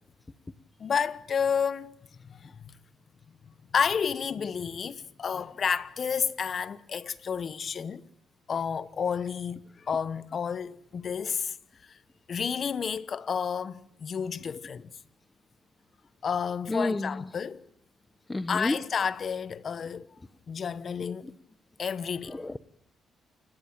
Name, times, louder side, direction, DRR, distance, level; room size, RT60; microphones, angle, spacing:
voice 1, 0.8-1.9 2.3-2.5 3.7-8.0 8.5-9.6 9.9-11.6 12.3-14.9 16.2-17.6 18.5-20.1 20.5-21.3 21.8-22.4, left 6 dB, 50° left, 1.2 m, -30 dB
voice 2, 16.7-17.2 18.3-18.7 22.4-22.6, left 2 dB, 20° left, 1.1 m, -29 dB
29.0 x 18.5 x 9.0 m
cardioid pair, 90°, 0 cm